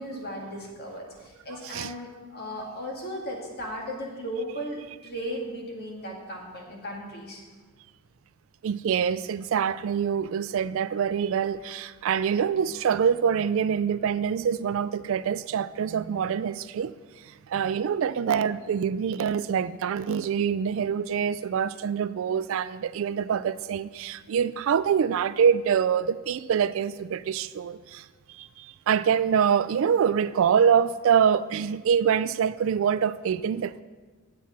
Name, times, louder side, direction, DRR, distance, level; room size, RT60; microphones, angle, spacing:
voice 1, 0.0-7.4, equal, 45° left, 2.0 m, -36 dB
voice 2, 8.6-16.9 17.2-33.8, right 7 dB, 65° right, 0.3 m, -25 dB
8.6 x 7.3 x 5.7 m
head